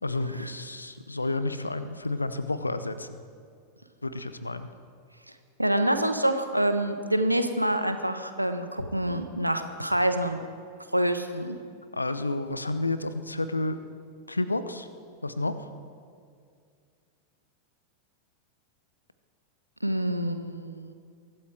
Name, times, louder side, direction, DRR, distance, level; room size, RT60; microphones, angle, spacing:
voice 1, 0.0-3.2 4.0-4.7 8.8-8.9 11.9-13.8 14.3-14.9 15.2-15.7, left 2 dB, 80° left, 12 dB, 0.8 m, -30 dB
voice 2, 5.6-10.4 10.9-11.6 19.8-20.9, right 1 dB, 90° right, 8 dB, 1.1 m, -26 dB
23.0 x 12.0 x 4.7 m, 2.3 s
figure-of-eight pair, 90°, 0 cm